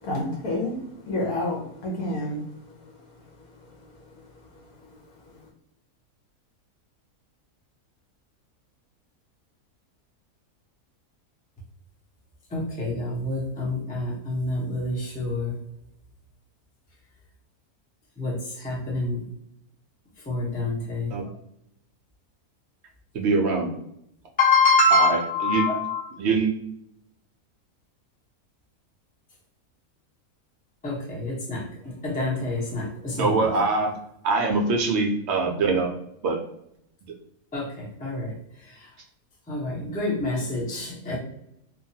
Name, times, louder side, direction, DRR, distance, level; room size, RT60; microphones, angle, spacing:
voice 1, 0.0-2.4 4.8-4.9, left 1 dB, 70° left, -1 dB, 1.1 m, -29 dB
voice 2, 12.5-15.6 18.2-19.2 20.3-21.1 24.4-26.0 30.8-33.4 37.5-38.3 39.5-41.2, left 2 dB, 10° left, -4 dB, 0.4 m, -26 dB
voice 3, 23.1-23.7 24.9-25.7 26.2-26.5 33.2-34.0 34.2-35.9 36.2-36.4, right 3 dB, 70° right, 1 dB, 0.6 m, -23 dB
2.9 x 2.2 x 2.7 m, 0.77 s
omnidirectional pair, 1.6 m